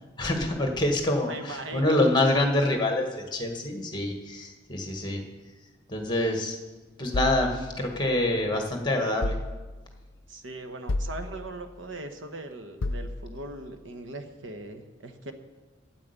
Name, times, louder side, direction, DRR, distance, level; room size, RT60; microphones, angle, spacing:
voice 1, 0.2-5.2 5.9-6.6 7.0-9.3, left 1 dB, 25° left, 3 dB, 1.7 m, -26 dB
voice 2, 1.3-2.0 10.3-15.3, right 2 dB, 75° right, 7 dB, 1.2 m, -39 dB
sound 1, 7.1-8.5 9.2-10.1 10.9-11.8 12.8-13.6, left 2 dB, 85° left, 0.6 m, -33 dB
9.9 x 8.8 x 8.2 m, 1.3 s
head